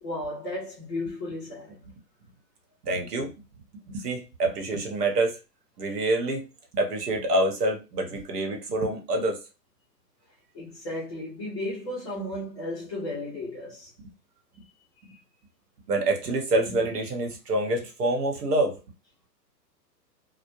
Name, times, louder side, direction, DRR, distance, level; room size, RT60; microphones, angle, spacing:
voice 1, 0.0-1.8 10.5-13.9 15.1-15.2, left 1 dB, 20° left, 0.4 m, -34 dB
voice 2, 2.8-3.3 3.9-5.3 5.8-6.4 6.7-9.4 14.0-14.1 15.9-18.8, right 2 dB, 65° right, 1.0 m, -26 dB
2.2 x 2.0 x 2.9 m
hypercardioid pair, 115°, 50 cm